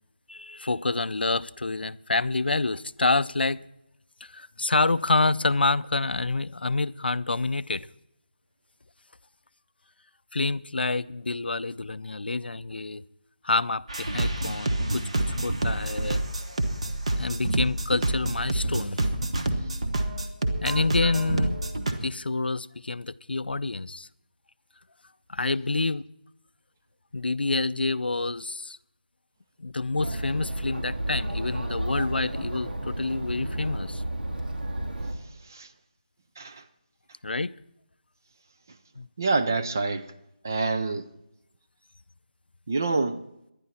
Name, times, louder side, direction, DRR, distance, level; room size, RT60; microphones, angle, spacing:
voice 1, 0.3-3.7 4.2-7.9 10.3-13.0 13.4-16.2 17.1-19.0 20.6-21.6 22.0-24.1 25.3-26.0 27.1-28.8 29.6-34.0 37.2-37.5 39.0-39.1, left 3 dB, 90° left, 0.5 m, -27 dB
sound 1, 13.9-21.9, right 1 dB, 40° right, 1.3 m, -28 dB
Chatter, 30.0-35.1, right 1 dB, 75° right, 3.0 m, -32 dB
voice 2, 39.2-40.1 40.4-41.1 42.7-43.3, right 3 dB, 20° right, 0.5 m, -26 dB
19.0 x 11.5 x 4.4 m
figure-of-eight pair, 175°, 5 cm